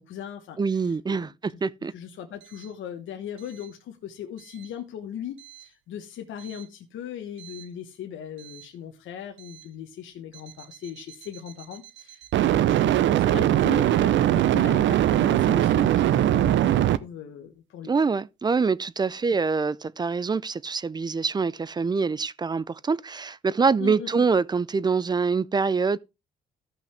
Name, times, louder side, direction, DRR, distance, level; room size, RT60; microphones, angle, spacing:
voice 1, 0.0-1.3 1.9-17.9 23.8-24.3, left 9 dB, 75° left, 1.2 m, -39 dB
voice 2, 0.6-1.9 17.8-26.0, right 5 dB, 20° right, 0.4 m, -25 dB
sound 1, 7.4-7.6 12.3-17.0, right 12 dB, 70° right, 0.6 m, -21 dB
14.0 x 5.6 x 3.3 m
cardioid pair, 90°, 20 cm